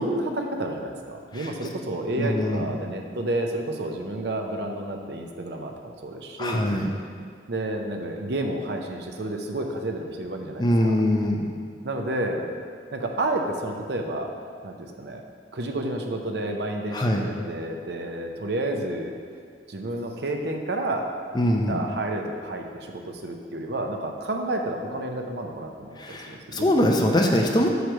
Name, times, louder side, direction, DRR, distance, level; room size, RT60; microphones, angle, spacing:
voice 1, 0.0-6.7 7.5-11.0 11.8-12.5 12.9-14.3 14.6-15.2 15.5-19.1 19.7-21.1 21.6-26.7, right 1 dB, 65° right, 3 dB, 0.7 m, -30 dB
voice 2, 2.2-2.7 6.4-6.9 10.6-11.5 16.9-17.3 21.3-21.8 26.0-27.7, left 1 dB, 25° left, 1 dB, 0.5 m, -23 dB
7.9 x 3.2 x 6.3 m, 2.1 s
head